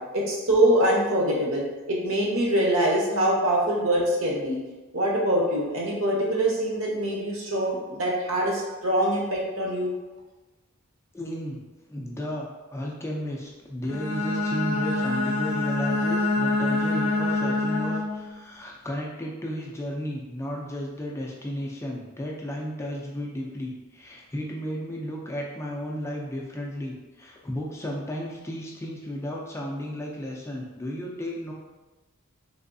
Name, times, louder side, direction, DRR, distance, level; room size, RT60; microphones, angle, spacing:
voice 1, 0.1-4.6 4.9-9.9, right 1 dB, 70° right, -3 dB, 0.9 m, -24 dB
voice 2, 11.1-11.6 11.9-31.5, equal, 10° left, -2 dB, 0.3 m, -33 dB
Bowed string instrument, 13.8-18.3, left 2 dB, 70° left, 0.5 m, -26 dB
3.3 x 3.0 x 2.6 m, 1.2 s
head